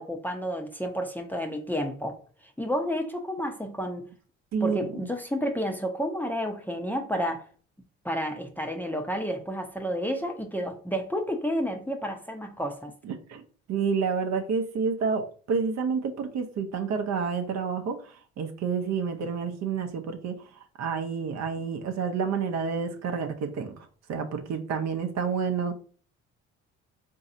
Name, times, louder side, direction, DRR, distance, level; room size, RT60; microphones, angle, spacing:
voice 1, 0.0-2.2 2.6-4.1 4.6-7.5 8.0-12.9, equal, 5° left, 0.6 m, -30 dB
voice 2, 4.5-5.0 13.0-13.4 13.7-20.4 20.8-23.8 24.1-25.7, right 5 dB, 50° right, 0.6 m, -29 dB
3.9 x 2.7 x 2.6 m
hypercardioid pair, 55°, 34 cm